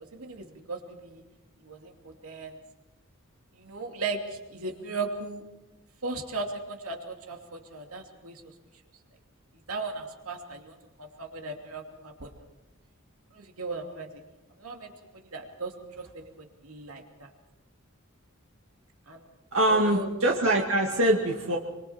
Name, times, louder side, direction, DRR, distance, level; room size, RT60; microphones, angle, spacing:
voice 1, 0.1-1.2 1.6-2.6 3.5-5.4 6.0-8.4 9.7-12.3 13.3-14.2 14.6-17.3 19.1-19.2 19.7-20.1, right 3 dB, 90° right, 2 dB, 2.8 m, -37 dB
voice 2, 19.5-21.6, right 1 dB, 75° right, -1 dB, 2.2 m, -23 dB
25.5 x 25.5 x 4.5 m, 1.0 s
head